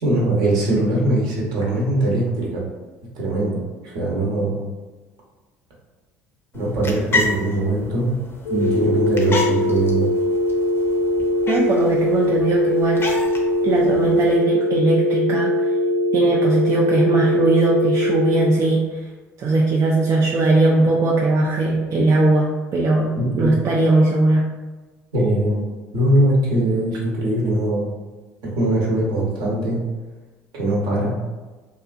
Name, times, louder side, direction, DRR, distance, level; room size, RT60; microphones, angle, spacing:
voice 1, 0.0-2.7 3.1-4.7 6.5-8.1 8.5-10.1 23.1-23.6 25.1-25.6 25.9-27.9 28.4-29.8 30.5-31.2, right 1 dB, 60° right, -3 dB, 0.9 m, -21 dB
sound 1, 6.5-14.4, left 3 dB, 30° left, 0.6 m, -31 dB
sound 2, 8.4-18.5, left 1 dB, 70° left, 0.8 m, -21 dB
voice 2, 11.5-13.0 13.6-15.7 16.1-19.1 19.4-24.4, right 2 dB, 40° right, -2 dB, 0.4 m, -19 dB
2.7 x 2.4 x 2.4 m, 1.2 s
hypercardioid pair, 65°, 8 cm